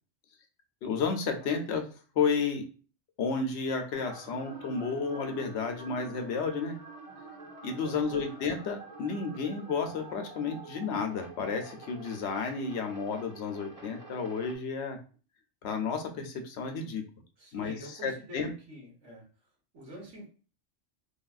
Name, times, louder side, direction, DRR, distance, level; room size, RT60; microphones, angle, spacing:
voice 1, 0.8-1.8 2.2-2.6 3.2-6.8 7.6-15.0 15.6-17.0 17.5-17.7 18.0-18.5, left 5 dB, 70° left, 5 dB, 0.8 m, -32 dB
sound 1, 3.9-14.6, right 3 dB, 35° right, 0.8 m, -47 dB
voice 2, 7.7-8.2 17.4-19.2 19.7-20.3, equal, 80° right, -2 dB, 1.4 m, -47 dB
3.3 x 2.3 x 2.3 m, 0.37 s
omnidirectional pair, 1.2 m